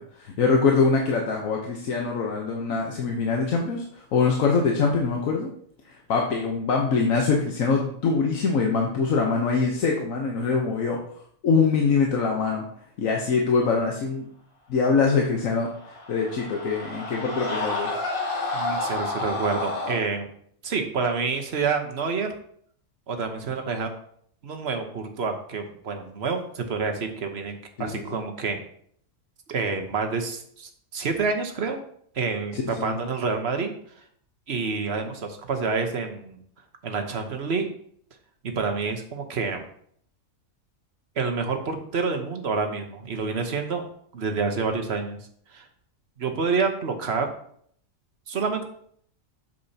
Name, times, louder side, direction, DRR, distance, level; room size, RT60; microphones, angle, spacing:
voice 1, 0.0-5.5 6.1-11.0 11.4-12.6 13.0-14.3 14.7-15.7 16.1-18.0 27.8-28.2 32.5-33.0, left 4 dB, 70° left, 0 dB, 1.3 m, -23 dB
Screaming, 15.5-20.0, left 2 dB, 40° left, 1.6 m, -30 dB
voice 2, 18.5-20.3 20.6-22.3 23.1-23.9 24.4-28.6 29.5-31.8 32.1-33.7 34.5-36.4 36.8-37.7 38.5-39.6 41.2-43.9 44.1-45.2 45.5-45.7 46.2-47.3 48.3-48.6, right 4 dB, 50° right, 5 dB, 1.2 m, -28 dB
8.3 x 6.9 x 2.8 m, 0.63 s
omnidirectional pair, 1.4 m